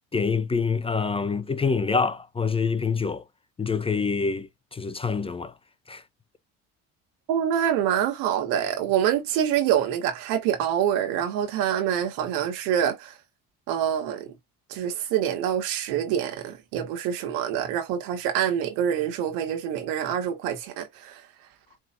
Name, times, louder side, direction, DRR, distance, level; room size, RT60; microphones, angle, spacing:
voice 1, 0.1-3.2 3.6-5.5 5.9-6.0, left 5 dB, 15° left, 0.5 m, -26 dB
voice 2, 7.3-13.1 13.7-14.3 14.7-21.2, right 9 dB, 85° right, 1.7 m, -26 dB
4.7 x 3.6 x 2.5 m
cardioid pair, 105°, 34 cm